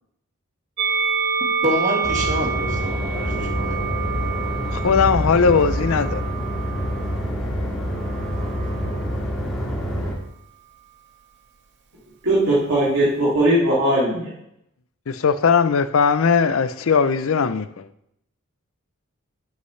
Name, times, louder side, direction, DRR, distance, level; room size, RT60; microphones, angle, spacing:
Musical instrument, 0.8-7.2 8.0-9.0, right 6 dB, 55° right, 0.7 m, -28 dB
voice 1, 1.6-3.8, equal, 35° right, 0 dB, 1.8 m, -27 dB
sound 1, 2.0-10.1, equal, ahead, 2.1 m, -27 dB
sound 2, 2.6-6.2, equal, 25° left, 2.8 m, -32 dB
voice 2, 4.7-6.2 15.1-17.9, left 5 dB, 70° left, 13 dB, 0.5 m, -19 dB
voice 3, 12.2-14.3, right 1 dB, 75° right, -9 dB, 2.6 m, -19 dB
9.6 x 8.2 x 3.2 m, 0.77 s
head